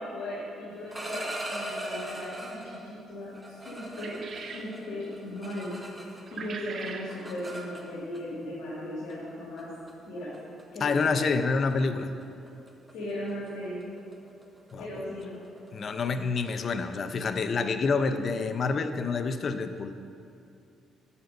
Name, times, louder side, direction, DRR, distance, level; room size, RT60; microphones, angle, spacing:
voice 1, 0.0-5.7 6.3-9.7 10.1-10.3 10.7-11.2 12.9-13.8 14.8-15.4, left 1 dB, 75° left, -8 dB, 2.1 m, -37 dB
sound 1, 0.7-2.8 3.3-6.4 6.7-8.2 9.1-9.2 9.6-9.9 10.3-10.6 10.9-11.2 11.5-11.7 12.0-17.4, right 1 dB, 15° right, 1.1 m, -40 dB
sound 2, 3.9-4.7 6.3-7.1, right 5 dB, 60° right, 0.7 m, -40 dB
voice 2, 10.8-12.1 14.7-15.1 15.7-20.0, left 4 dB, 50° left, 9 dB, 0.5 m, -28 dB
7.5 x 6.9 x 5.3 m, 2.6 s
cardioid pair, 90°, 0 cm